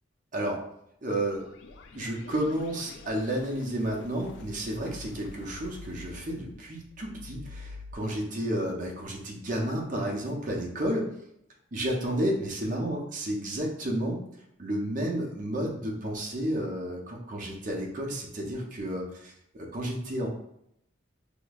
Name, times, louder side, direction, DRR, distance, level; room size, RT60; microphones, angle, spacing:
voice 1, 1.0-1.4 1.9-11.1 11.7-14.2 14.6-20.3, right 1 dB, 40° right, -1 dB, 0.7 m, -31 dB
sound 1, 1.1-7.9, left 3 dB, 65° left, 0.3 m, -47 dB
5.0 x 2.0 x 2.3 m, 0.76 s
head